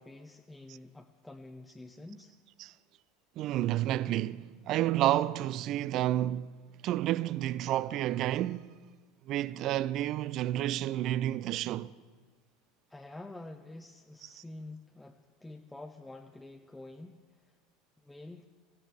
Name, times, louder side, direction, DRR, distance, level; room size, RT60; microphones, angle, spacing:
voice 1, 0.0-2.3 12.9-17.5 18.0-18.4, left 2 dB, 10° left, 0.8 m, -48 dB
voice 2, 3.4-8.7 9.3-11.9 14.4-14.5, right 13 dB, 45° right, 0.4 m, -30 dB
24.5 x 16.0 x 3.4 m
figure-of-eight pair, 75°, 0 cm